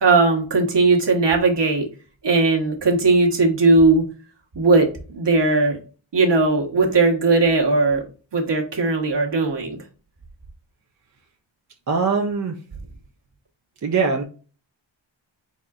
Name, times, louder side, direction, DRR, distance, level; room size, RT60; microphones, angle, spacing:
voice 1, 0.0-1.9 2.2-4.1 4.5-4.9 5.1-5.8 6.1-8.0 8.3-9.8, right 3 dB, 60° right, 1 dB, 1.3 m, -18 dB
voice 2, 11.9-12.6 13.8-14.2, right 5 dB, 40° right, 2 dB, 0.6 m, -21 dB
4.5 x 4.1 x 2.4 m, 0.36 s
wide cardioid pair, 135°, 46 cm